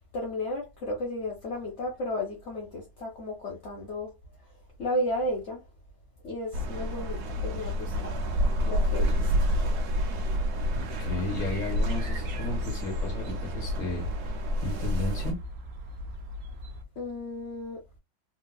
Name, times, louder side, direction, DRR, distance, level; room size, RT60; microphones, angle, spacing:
voice 1, 0.1-4.1 4.8-5.6 6.2-8.1 8.6-9.5 17.0-17.8, left 1 dB, 55° left, 0.8 m, -33 dB
sound 1, 6.5-15.3, equal, 60° right, 1.1 m, -29 dB
voice 2, 10.7-14.1 14.6-15.4, left 2 dB, 25° left, 1.7 m, -34 dB
sound 2, 11.4-16.8, left 1 dB, 80° right, 0.7 m, -41 dB
3.5 x 2.8 x 2.2 m
omnidirectional pair, 2.3 m